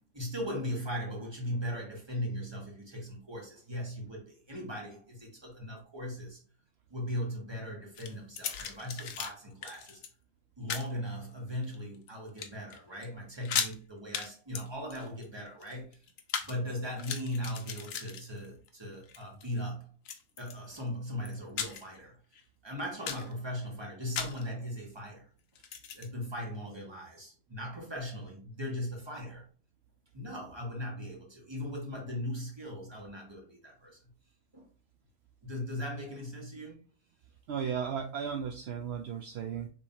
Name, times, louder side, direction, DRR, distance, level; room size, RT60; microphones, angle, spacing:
voice 1, 0.0-6.4 6.9-10.0 10.6-16.0 16.4-19.9 20.4-22.1 22.6-25.3 25.9-29.5 30.1-34.0 34.5-34.6 35.4-36.8, equal, 20° right, 1.5 m, -38 dB
sound 1, 7.9-9.3 9.6-10.1 10.7-10.9 11.5-12.1 12.4-12.8 13.0-13.1 13.4-13.8 14.1-14.3 14.5-16.5 16.9-18.7 19.0-19.4 20.0-20.8 21.2-22.0 22.3-22.4 22.8-23.3 24.2-24.5 25.6-26.1, left 7 dB, 70° left, 1.0 m, -37 dB
voice 2, 37.5-39.7, right 7 dB, 65° right, 0.6 m, -35 dB
5.3 x 3.5 x 2.7 m
omnidirectional pair, 1.5 m